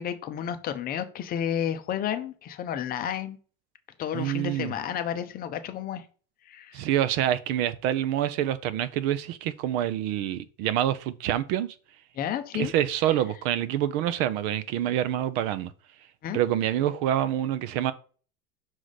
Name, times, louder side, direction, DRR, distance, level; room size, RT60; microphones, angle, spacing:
voice 1, 0.0-3.4 4.0-6.0 6.5-6.8 12.2-12.7 16.2-16.4, left 9 dB, 25° left, 0.6 m, -31 dB
voice 2, 4.1-4.7 6.7-11.8 12.5-15.7 16.3-17.9, right 11 dB, 55° right, 0.7 m, -26 dB
6.3 x 4.9 x 4.1 m
cardioid pair, 165°, 36 cm